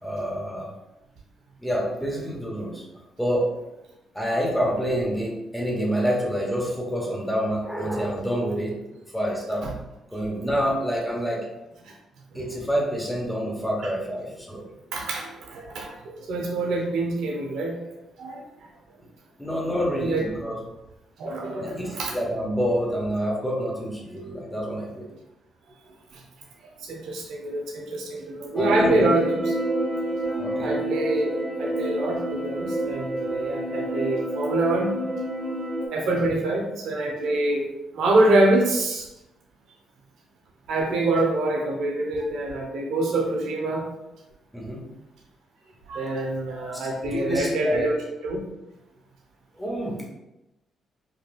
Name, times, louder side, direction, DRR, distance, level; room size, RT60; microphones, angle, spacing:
voice 1, 0.0-0.7 1.6-2.8 3.2-3.5 4.1-8.8 9.1-9.7 10.1-11.5 12.3-14.6 19.4-20.6 21.6-25.1 28.5-29.1 30.4-30.8 36.0-36.3 44.5-44.9 46.7-47.9 49.6-50.1, equal, 5° left, -2 dB, 1.1 m, -27 dB
voice 2, 14.9-18.4 20.0-20.3 21.2-22.2 26.1-26.2 26.8-29.4 30.3-35.0 35.9-39.1 40.7-43.9 45.9-48.0 48.2-48.4, right 2 dB, 80° right, 0 dB, 0.6 m, -26 dB
sound 1, 28.6-35.9, right 1 dB, 35° right, 0.8 m, -28 dB
4.0 x 2.4 x 2.4 m, 0.93 s
supercardioid pair, 60°, 0 cm